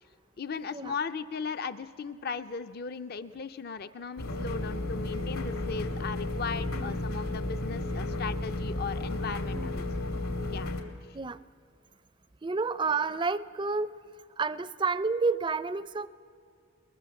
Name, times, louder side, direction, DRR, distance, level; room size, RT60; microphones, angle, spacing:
voice 1, 0.4-9.8 10.5-10.7 11.1-11.2, left 5 dB, 45° left, 11 dB, 0.5 m, -37 dB
sound 1, 4.2-10.8, left 2 dB, 80° left, 2.7 m, -33 dB
voice 2, 6.7-7.0 9.5-9.9 11.1-11.4 12.4-13.9 14.4-16.1, right 4 dB, 20° right, 17 dB, 0.5 m, -30 dB
22.0 x 21.5 x 7.1 m, 2.3 s
head